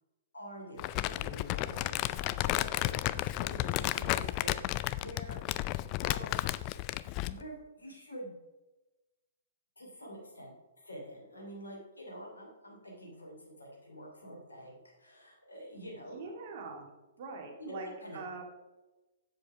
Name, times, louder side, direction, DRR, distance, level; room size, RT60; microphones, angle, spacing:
voice 1, 0.3-5.4 6.0-6.4 7.3-8.3 9.8-16.3 17.6-18.2, equal, 75° left, -1 dB, 2.8 m, -47 dB
Crumpling crinkling, 0.8-7.4, left 16 dB, 35° left, 0.4 m, -33 dB
voice 2, 16.0-16.9 17.2-18.4, right 3 dB, 45° right, 2 dB, 2.1 m, -43 dB
7.6 x 7.5 x 5.6 m, 1.1 s
figure-of-eight pair, 115°, 0 cm